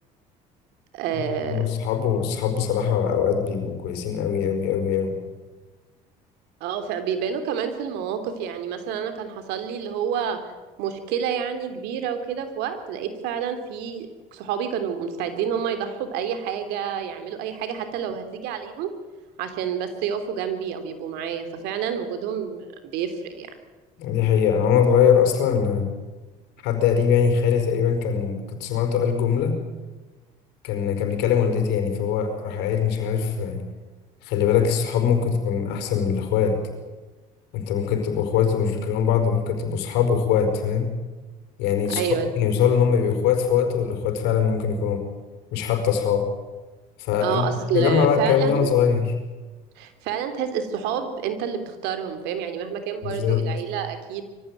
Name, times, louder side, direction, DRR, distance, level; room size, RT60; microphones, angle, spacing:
voice 1, 0.9-1.6 6.6-10.4 10.8-18.9 19.4-23.5 41.9-42.3 42.7-42.8 47.2-48.7 49.8-54.2, right 8 dB, 80° right, 8 dB, 3.2 m, -29 dB
voice 2, 1.5-5.2 24.0-25.9 26.6-29.6 30.6-33.6 34.2-36.6 37.5-41.0 41.6-42.1 42.4-45.0 45.5-46.3 47.0-47.5 47.7-49.1 53.0-53.5, left 7 dB, 80° left, 6 dB, 5.0 m, -22 dB
23.0 x 15.5 x 9.1 m, 1.3 s
supercardioid pair, 80°, 17 cm